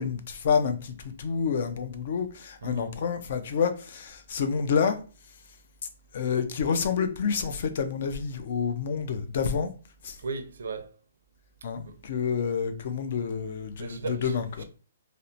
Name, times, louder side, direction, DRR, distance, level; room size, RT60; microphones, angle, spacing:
voice 1, 0.0-5.0 6.1-9.7 10.0-10.2 11.6-14.6, left 6 dB, 55° left, 0.4 m, -28 dB
voice 2, 2.6-2.9 10.2-10.9 11.9-12.0 13.8-14.6, right 4 dB, 80° right, 0.5 m, -37 dB
2.8 x 2.1 x 2.5 m
hypercardioid pair, 160°, 0 cm